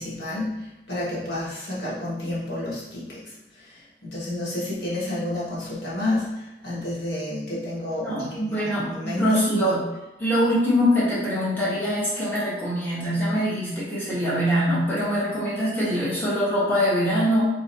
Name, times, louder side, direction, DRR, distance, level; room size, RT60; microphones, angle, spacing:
voice 1, 0.0-3.2 3.6-3.7 4.0-9.4, left 1 dB, 85° left, -8 dB, 1.6 m, -30 dB
voice 2, 8.0-9.8 10.2-17.4, equal, 10° left, -10 dB, 1.5 m, -23 dB
3.8 x 3.1 x 4.2 m, 0.97 s
head